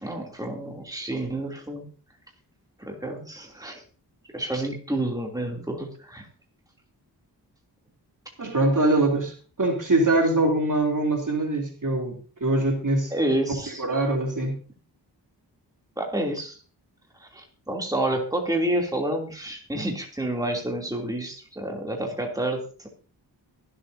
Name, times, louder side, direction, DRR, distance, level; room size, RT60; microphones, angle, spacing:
voice 1, 0.0-1.9 2.8-3.8 4.3-6.3 13.1-14.1 16.0-16.6 17.2-22.9, right 1 dB, 10° right, 0 dB, 3.0 m, -29 dB
voice 2, 8.4-13.1 13.8-14.6, right 2 dB, 45° right, 1 dB, 3.1 m, -23 dB
23.0 x 8.1 x 2.8 m, 0.39 s
cardioid pair, 45°, 42 cm